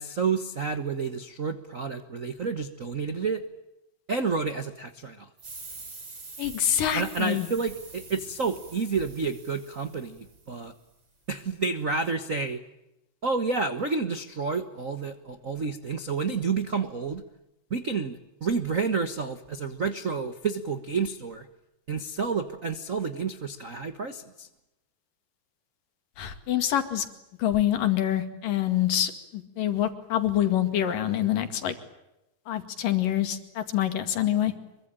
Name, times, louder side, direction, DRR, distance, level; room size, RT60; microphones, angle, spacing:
voice 1, 0.0-3.4 4.1-5.3 6.9-10.7 11.3-12.6 13.2-17.2 17.7-21.5 21.9-24.5, right 4 dB, 65° right, 10 dB, 0.8 m, -30 dB
sound 1, 5.4-10.7, right 3 dB, 35° right, 5.5 m, -45 dB
voice 2, 6.4-7.5 26.2-27.1 27.4-31.8 32.5-34.5, left 11 dB, 80° left, 9 dB, 3.8 m, -26 dB
25.5 x 23.5 x 9.0 m, 0.91 s
omnidirectional pair, 3.8 m